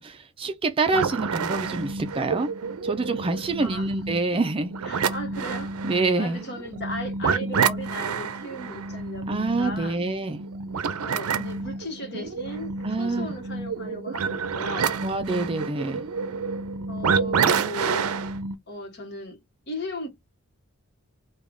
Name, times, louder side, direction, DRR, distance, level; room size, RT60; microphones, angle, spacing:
voice 1, 0.0-2.5 2.8-5.0 5.9-6.4 9.3-10.4 12.8-13.3 15.0-16.1, right 3 dB, 25° right, 0.4 m, -26 dB
sound 1, 0.8-18.5, right 5 dB, 80° right, 0.5 m, -29 dB
voice 2, 3.6-3.9 4.8-5.8 6.2-10.0 11.0-14.9 16.9-18.1 18.7-19.4 19.7-20.1, left 1 dB, 50° left, 1.1 m, -37 dB
3.3 x 2.3 x 3.6 m
head